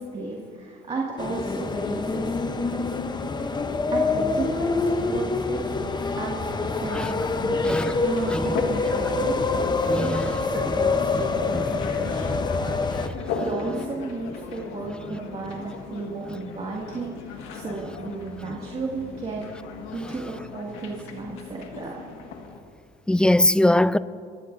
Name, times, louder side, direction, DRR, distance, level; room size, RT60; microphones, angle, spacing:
voice 1, 0.0-2.9 3.4-3.6 3.9-9.6 9.9-12.4 12.7-19.4 19.9-22.0, right 3 dB, 30° right, 2.3 m, -34 dB
sound 1, 1.2-13.1, left 3 dB, 20° left, 0.9 m, -26 dB
sound 2, 7.8-22.6, left 5 dB, 80° left, 1.8 m, -37 dB
voice 2, 9.9-10.3 11.1-11.2 11.5-11.6 12.2-12.4 13.0-13.4 23.1-24.0, left 1 dB, 5° left, 0.3 m, -22 dB
28.0 x 14.5 x 2.7 m
cardioid pair, 110°, 19 cm